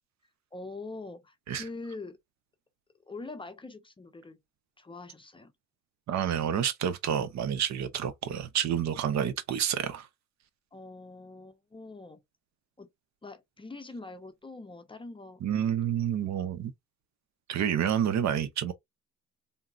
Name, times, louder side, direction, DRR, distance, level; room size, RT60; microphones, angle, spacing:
voice 1, 0.5-2.2 3.1-4.4 4.8-5.5 10.7-12.2 12.8-12.9 13.2-15.4, left 3 dB, 15° left, 0.5 m, -43 dB
voice 2, 6.1-10.1 15.4-16.7 17.5-18.7, right 9 dB, 65° right, 0.7 m, -29 dB
3.6 x 2.0 x 2.3 m
cardioid pair, 90°, 30 cm